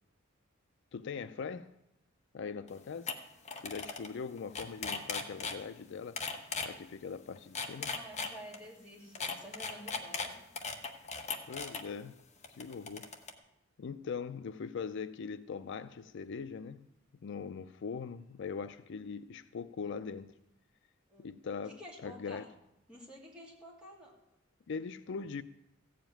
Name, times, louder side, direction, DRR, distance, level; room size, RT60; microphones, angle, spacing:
voice 1, 0.9-1.7 2.3-3.1 3.6-6.2 6.6-7.9 11.5-12.2 12.5-13.1 13.8-16.9 17.2-20.3 21.2-22.4 24.7-25.4, left 5 dB, 65° left, 0.4 m, -41 dB
sound 1, 2.7-2.8 3.1-3.2 3.5-4.1 4.4-5.6 6.2-6.7 7.4-8.6 9.2-11.8 12.4-13.3, left 4 dB, 35° left, 1.1 m, -37 dB
voice 2, 7.6-10.4 21.1-21.3 21.6-22.5 22.9-24.2, equal, 5° right, 3.0 m, -50 dB
15.0 x 5.1 x 8.9 m
head